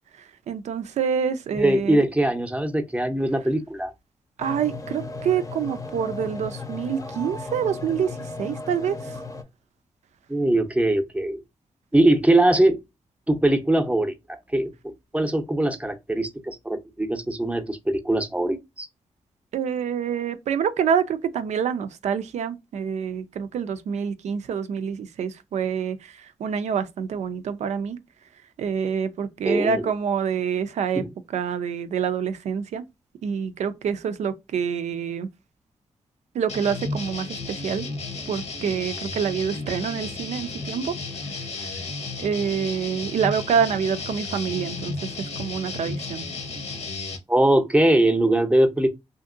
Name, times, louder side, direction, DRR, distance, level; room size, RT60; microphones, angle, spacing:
voice 1, 0.2-2.0 4.4-9.2 19.5-28.0 28.6-31.0 31.3-32.9 33.2-35.3 36.3-37.9 38.3-40.9 41.6-41.8 42.2-46.3, right 7 dB, 85° right, 0.4 m, -27 dB
voice 2, 1.6-3.9 10.3-11.4 11.9-12.8 13.3-14.7 15.1-18.9 29.4-29.9 30.9-31.1 47.3-48.9, right 1 dB, 10° right, 0.6 m, -21 dB
sound 1, 4.4-9.4, left 3 dB, 30° left, 0.6 m, -35 dB
sound 2, 36.5-47.2, left 3 dB, 70° left, 0.8 m, -33 dB
2.8 x 2.6 x 2.4 m
cardioid pair, 70°, 11 cm